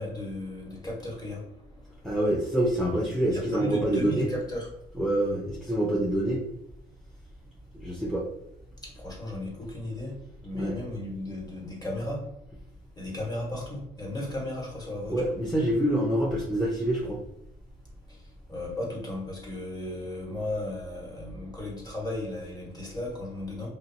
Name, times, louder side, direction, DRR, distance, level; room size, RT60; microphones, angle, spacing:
voice 1, 0.0-2.2 3.3-4.7 8.8-10.2 10.4-12.3 12.9-15.3 18.1-23.7, left 1 dB, 20° left, -3 dB, 1.2 m, -35 dB
voice 2, 2.0-4.3 4.9-6.4 7.7-8.3 10.5-10.8 15.1-17.2, right 1 dB, ahead, -3 dB, 0.5 m, -26 dB
2.6 x 2.1 x 2.6 m, 0.79 s
cardioid pair, 90°, 20 cm